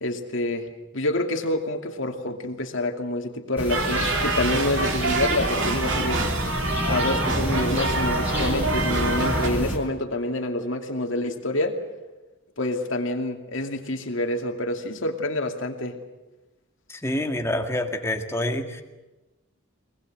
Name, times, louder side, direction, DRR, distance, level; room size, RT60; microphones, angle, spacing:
voice 1, 0.0-6.2 6.9-11.7 12.6-15.9, left 1 dB, 65° left, 4 dB, 2.6 m, -27 dB
sound 1, 3.6-9.8, equal, 10° right, 4.8 m, -28 dB
sound 2, 3.7-9.5, right 3 dB, 60° right, 2.5 m, -27 dB
voice 2, 16.9-18.8, left 1 dB, 15° left, 4 dB, 2.0 m, -27 dB
23.0 x 20.5 x 7.9 m, 1.1 s
head